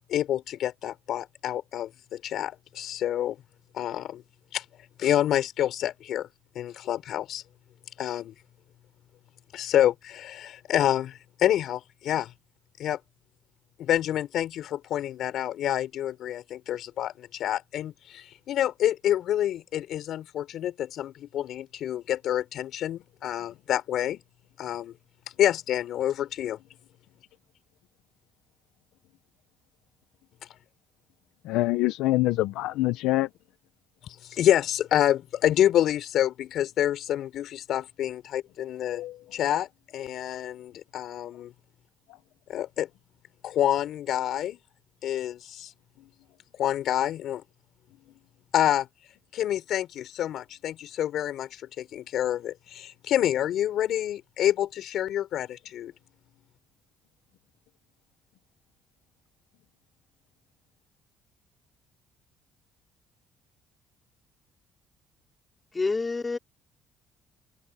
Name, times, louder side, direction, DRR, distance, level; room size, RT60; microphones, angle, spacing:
voice 1, 0.0-3.4 3.7-4.2 4.5-4.6 5.0-6.3 6.6-7.4 8.0-8.3 9.5-12.3 12.8-13.0 13.8-24.2 24.6-24.9 25.4-26.6 34.0-39.0 39.3-39.7 39.9-41.5 42.5-42.9 43.4-44.6 45.0-45.7 46.6-47.4 48.5-48.9 49.3-55.9, left 11 dB, 55° left, 5.5 m, -27 dB
voice 2, 31.4-33.3 38.9-39.2, left 18 dB, 90° left, 0.8 m, -25 dB
voice 3, 65.7-66.4, left 3 dB, 15° left, 4.7 m, -27 dB
cardioid pair, 155°, 0 cm